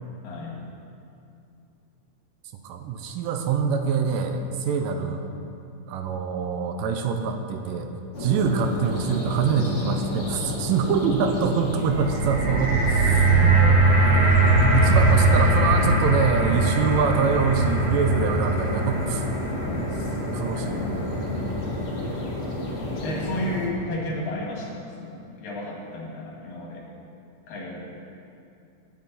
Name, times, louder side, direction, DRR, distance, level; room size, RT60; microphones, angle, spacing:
voice 1, 0.2-0.6 12.3-12.5 12.8-13.8 14.2-14.3 19.5-20.2 20.5-21.6 23.0-26.8 27.5-27.8, left 1 dB, 75° left, -2 dB, 3.5 m, -33 dB
voice 2, 2.6-5.2 5.9-7.9 8.2-13.3 14.0-19.3 20.3-20.8, right 6 dB, 85° right, 6 dB, 2.3 m, -25 dB
sound 1, 8.1-23.7, left 2 dB, 60° left, 0.7 m, -31 dB
sound 2, 11.8-22.0 22.8-22.9, right 2 dB, 45° right, 3.2 m, -21 dB
17.0 x 8.2 x 4.1 m, 2.6 s
omnidirectional pair, 4.0 m